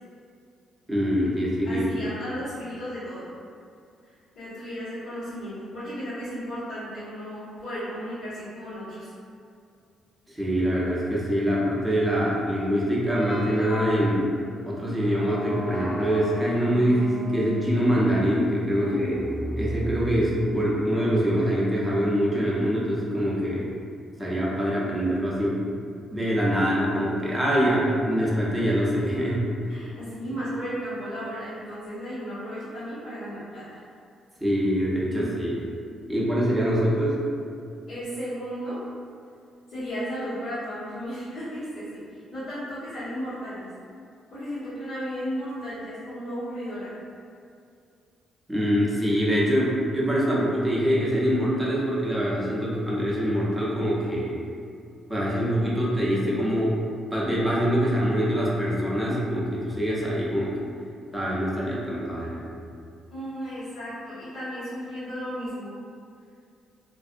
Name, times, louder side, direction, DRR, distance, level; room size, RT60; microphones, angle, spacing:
voice 1, 0.9-2.1 10.3-14.3 14.6-19.2 19.6-23.7 24.2-25.6 26.1-29.5 34.4-35.6 36.1-37.2 48.5-54.3 55.1-56.8 57.1-60.6 61.1-62.5, equal, 5° right, -7 dB, 0.6 m, -24 dB
voice 2, 1.6-3.3 4.0-9.1 18.8-19.3 29.7-33.8 35.1-35.4 36.1-36.3 37.9-38.8 39.7-43.6 44.3-46.9 57.2-57.5 63.1-65.8, equal, 70° left, -17 dB, 1.2 m, -35 dB
sound 1, 13.1-20.8, left 1 dB, 40° left, 0.7 m, -36 dB
2.5 x 2.0 x 2.5 m, 2.4 s
cardioid pair, 90°, 0 cm